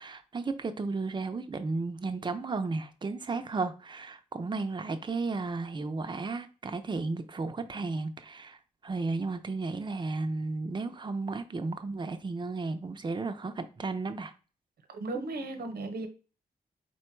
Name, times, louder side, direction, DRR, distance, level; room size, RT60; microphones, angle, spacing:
voice 1, 0.0-8.6 8.8-14.3, right 3 dB, 30° right, 0.5 m, -34 dB
voice 2, 14.9-16.1, right 2 dB, 90° right, 0.9 m, -35 dB
4.5 x 2.2 x 4.4 m
wide cardioid pair, 130°, 16 cm